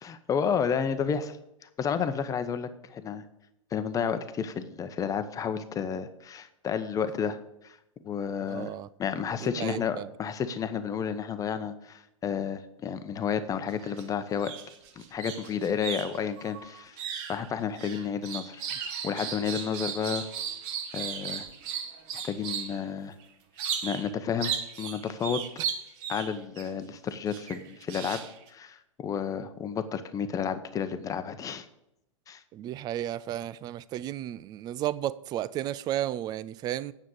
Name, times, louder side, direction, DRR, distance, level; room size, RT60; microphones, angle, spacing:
voice 1, 0.0-1.4 1.8-3.2 3.7-7.4 7.6-7.8 8.0-8.7 9.0-14.5 15.0-17.0 17.3-20.3 20.9-21.5 22.2-23.1 23.8-24.5 24.8-25.4 26.1-28.2 28.5-31.6 32.3-32.4, left 7 dB, 20° left, 0.9 m, -31 dB
voice 2, 8.5-8.9 9.4-10.1 19.4-19.6 32.5-36.9, right 12 dB, 25° right, 0.4 m, -33 dB
sound 1, 13.7-14.0 14.3-22.8 23.6-24.1 24.4-26.7 27.3-28.5, right 8 dB, 40° right, 1.6 m, -36 dB
9.5 x 7.3 x 6.4 m
figure-of-eight pair, 105°, 17 cm